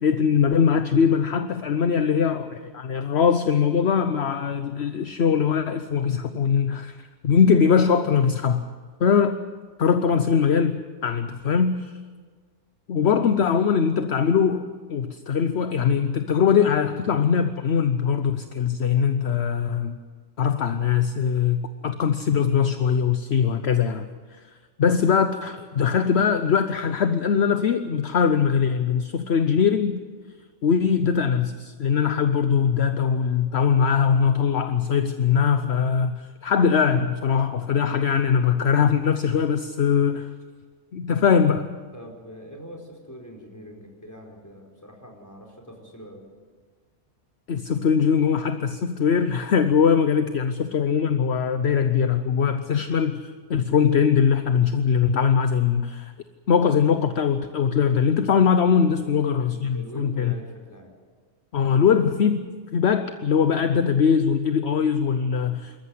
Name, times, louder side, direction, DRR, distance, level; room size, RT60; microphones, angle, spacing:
voice 1, 0.0-7.0 7.2-8.6 9.0-9.4 9.8-11.9 12.9-20.0 20.4-24.1 24.8-30.0 30.6-40.3 40.9-41.7 47.5-56.1 56.5-60.3 61.5-62.5 62.7-65.7, left 7 dB, 60° left, 9 dB, 1.1 m, -21 dB
voice 2, 41.9-46.2 52.6-52.8 59.0-60.9, equal, 15° left, 1 dB, 4.5 m, -43 dB
26.5 x 14.0 x 9.5 m, 1.5 s
omnidirectional pair, 1.3 m